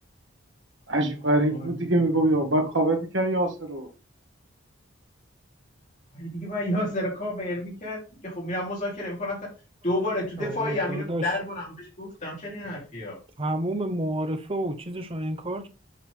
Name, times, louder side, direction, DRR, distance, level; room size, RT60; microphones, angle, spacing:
voice 1, 0.9-3.9, right 1 dB, 70° right, 1.9 m, -24 dB
voice 2, 1.5-1.9 2.2-2.3 6.1-9.4 9.8-13.2, left 1 dB, 40° left, 3.4 m, -30 dB
voice 3, 10.4-11.2 13.4-15.7, right 1 dB, 30° right, 0.9 m, -30 dB
7.6 x 5.0 x 3.5 m
head